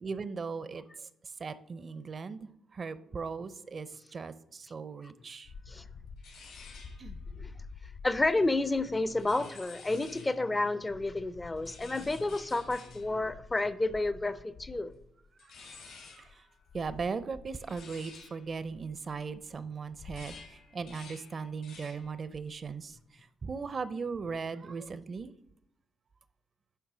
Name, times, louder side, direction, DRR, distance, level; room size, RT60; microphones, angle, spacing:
voice 1, 0.0-0.8 1.2-5.5 7.0-7.2 15.4-15.5 15.9-16.4 16.7-25.3, right 5 dB, 40° right, 0.5 m, -38 dB
sound 1, 5.4-10.5 10.8-19.5 19.8-22.2 22.4-22.9, left 4 dB, 80° left, 3.1 m, -49 dB
voice 2, 8.0-14.9, left 2 dB, 20° left, 0.5 m, -30 dB
10.5 x 3.6 x 6.0 m
cardioid pair, 90°, 0 cm